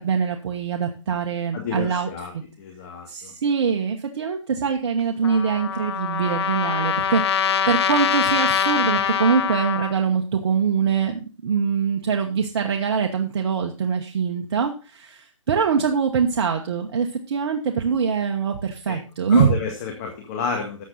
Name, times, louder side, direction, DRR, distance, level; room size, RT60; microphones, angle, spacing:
voice 1, 0.0-2.1 3.1-19.5, right 6 dB, 50° right, 2 dB, 1.3 m, -23 dB
voice 2, 1.5-2.3 2.6-3.3 18.9-19.0 19.3-20.8, left 5 dB, 30° left, 2 dB, 1.7 m, -30 dB
Trumpet, 5.2-9.9, left 7 dB, 55° left, 1.0 m, -23 dB
13.0 x 7.6 x 4.0 m, 0.33 s
hypercardioid pair, 155°, 17 cm